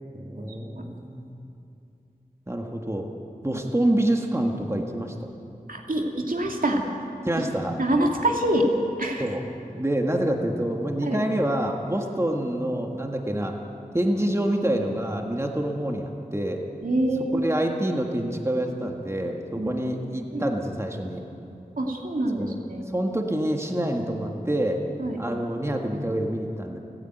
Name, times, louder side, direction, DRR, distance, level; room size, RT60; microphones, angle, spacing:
voice 1, 0.2-1.3 2.5-3.1 3.4-5.1 7.2-7.8 9.2-9.4 9.7-13.5 13.9-16.6 17.3-21.2 22.4-22.6 22.9-24.8 25.2-26.8, right 1 dB, 20° right, 2 dB, 1.7 m, -27 dB
voice 2, 5.7-6.8 7.8-8.7 9.0-9.3 11.1-11.2 16.8-17.5 19.6-19.7 20.3-20.5 21.8-22.9 25.0-25.2, right 1 dB, 65° right, 1 dB, 2.4 m, -25 dB
29.5 x 9.9 x 9.2 m, 2.7 s
wide cardioid pair, 60°, 15 cm